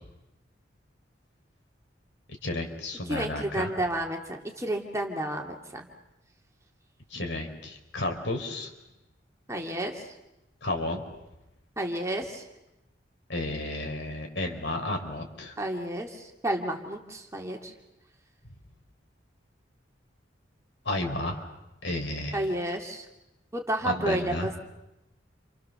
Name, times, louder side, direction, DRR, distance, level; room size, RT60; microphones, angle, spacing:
voice 1, 2.4-3.7 7.1-8.7 10.6-11.0 13.3-15.5 20.8-21.5 21.8-22.4 23.8-24.5, left 1 dB, 70° left, 4 dB, 4.8 m, -32 dB
voice 2, 3.1-5.9 9.5-10.0 11.8-12.4 15.6-17.7 22.3-23.1 23.5-24.5, right 1 dB, 15° right, 2 dB, 2.6 m, -31 dB
29.5 x 28.0 x 6.9 m, 0.96 s
head